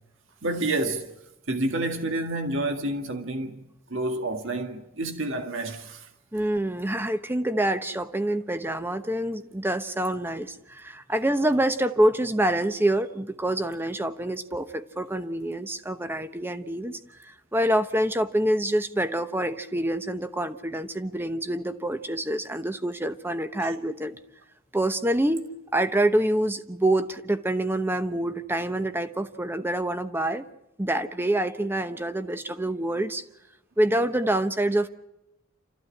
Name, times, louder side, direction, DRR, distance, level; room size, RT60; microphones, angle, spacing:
voice 1, 0.4-1.1 1.5-3.6 3.9-6.1 23.6-23.7, right 2 dB, 60° right, 1.9 m, -29 dB
voice 2, 6.3-24.1 24.7-25.4 25.7-30.4 30.8-33.2 33.8-34.9, right 1 dB, 10° right, 1.0 m, -26 dB
28.0 x 14.5 x 9.9 m
head